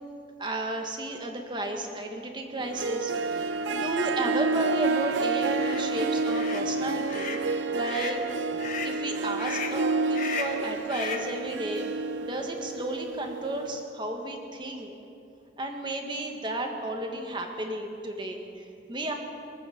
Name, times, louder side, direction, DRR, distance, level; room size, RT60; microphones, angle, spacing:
voice 1, 0.4-7.4 7.7-8.2 8.8-11.9 12.2-14.9 15.6-19.1, right 1 dB, 25° right, 3 dB, 1.5 m, -33 dB
Harp, 2.6-13.8, right 3 dB, 90° right, 0.6 m, -29 dB
Motorcycle, 2.8-9.3, right 3 dB, 55° right, 1.3 m, -49 dB
sound 1, 5.5-5.8 6.3-6.7 7.1-7.4 7.8-8.2 8.6-9.0 9.4-9.8 10.1-10.6 10.9-11.3, left 6 dB, 45° left, 1.3 m, -35 dB
23.0 x 8.5 x 7.2 m, 2.7 s
head